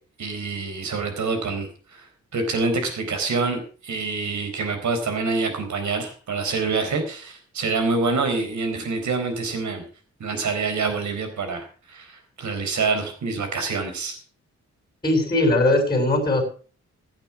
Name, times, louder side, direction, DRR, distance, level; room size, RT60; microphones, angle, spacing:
voice 1, 0.2-2.0 2.3-9.8 10.2-14.2, right 4 dB, 80° right, 7 dB, 4.3 m, -26 dB
voice 2, 15.0-16.4, left 2 dB, 15° left, 2 dB, 6.0 m, -19 dB
16.0 x 8.9 x 6.2 m, 0.40 s
wide cardioid pair, 135°, 29 cm